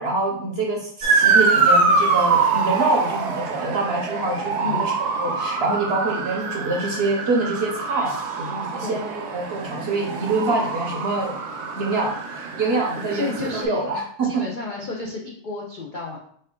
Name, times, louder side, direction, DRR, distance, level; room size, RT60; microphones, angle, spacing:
voice 1, 0.0-8.1 8.4-11.4 11.8-14.4, right 2 dB, 55° right, 0 dB, 0.8 m, -25 dB
Motor vehicle (road) / Siren, 1.0-13.6, right 4 dB, 85° right, 1.3 m, -24 dB
voice 2, 13.1-13.8 14.2-16.2, left 4 dB, 60° left, -2 dB, 0.5 m, -31 dB
4.3 x 2.5 x 3.6 m, 0.63 s
omnidirectional pair, 1.6 m